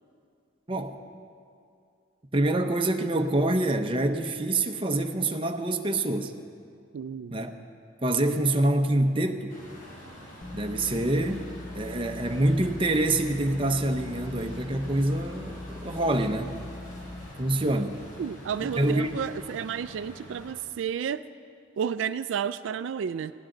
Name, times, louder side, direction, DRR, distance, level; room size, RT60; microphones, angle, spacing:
voice 1, 0.7-1.0 2.3-6.3 7.3-7.5 8.0-9.6 10.5-16.6 17.4-18.0 18.8-19.1, right 1 dB, 25° right, 5 dB, 0.8 m, -26 dB
voice 2, 6.9-7.4 18.2-21.2 21.8-23.3, right 7 dB, 80° right, 13 dB, 0.3 m, -31 dB
Truck, 9.5-20.5, equal, 45° left, 3.5 m, -45 dB
sound 1, 10.4-17.3, left 2 dB, 25° left, 0.3 m, -41 dB
19.5 x 16.5 x 3.9 m, 2.4 s
head